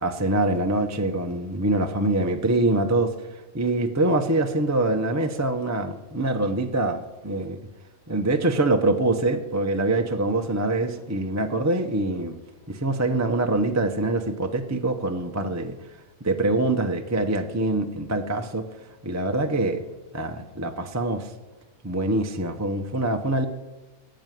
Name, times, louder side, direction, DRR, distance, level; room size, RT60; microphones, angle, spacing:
voice 1, 0.0-7.6 8.1-12.4 12.7-15.8 16.2-18.6 19.0-19.8 20.1-21.3 21.8-23.5, right 2 dB, 15° right, 5 dB, 0.5 m, -24 dB
16.0 x 7.7 x 9.2 m, 1.1 s
omnidirectional pair, 1.6 m